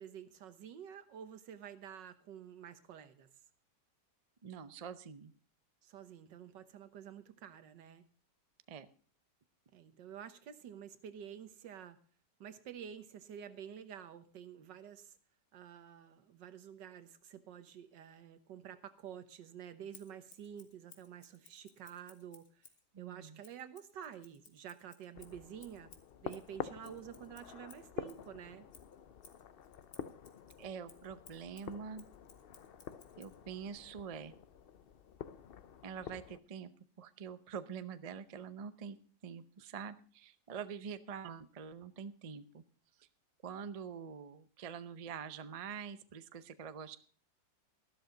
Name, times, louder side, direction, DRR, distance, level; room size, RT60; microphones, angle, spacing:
voice 1, 0.0-3.3 5.8-8.0 9.7-12.0 12.4-15.2 15.5-22.6 23.0-25.9 26.2-28.7, right 9 dB, 85° right, 12 dB, 1.8 m, -50 dB
voice 2, 4.4-5.3 8.7-8.9 22.9-23.4 30.6-32.1 33.2-34.3 35.8-36.7 37.0-39.0 39.2-42.6 43.0-43.1 43.4-47.0, right 7 dB, 55° right, 12 dB, 0.4 m, -45 dB
Scissors, 19.9-22.9 23.4-28.3 28.7-33.4, left 6 dB, 65° left, 2.1 m, -61 dB
sound 1, 25.1-36.4, left 8 dB, 90° left, 0.5 m, -48 dB
13.5 x 12.5 x 3.9 m, 0.42 s
omnidirectional pair, 1.9 m